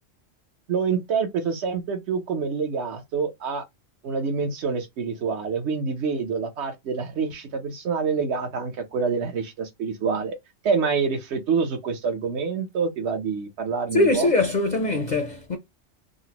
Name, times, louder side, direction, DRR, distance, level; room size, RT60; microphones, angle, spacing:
voice 1, 0.7-3.6 4.0-10.3 10.6-14.3, right 5 dB, 65° right, 0.9 m, -26 dB
voice 2, 13.9-15.6, left 2 dB, 45° left, 0.6 m, -22 dB
3.8 x 2.1 x 2.8 m
omnidirectional pair, 1.3 m